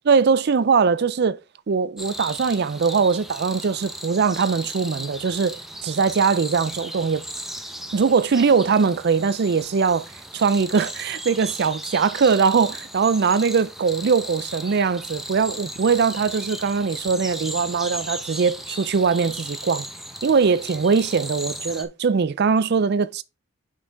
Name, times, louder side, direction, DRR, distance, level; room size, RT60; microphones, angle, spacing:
voice 1, 0.1-1.4 1.7-5.6 5.8-7.2 7.9-10.1 10.3-19.9 20.2-23.2, right 5 dB, 50° right, 0.4 m, -21 dB
sound 1, 2.0-21.8, equal, ahead, 0.7 m, -36 dB
6.2 x 5.7 x 3.5 m
head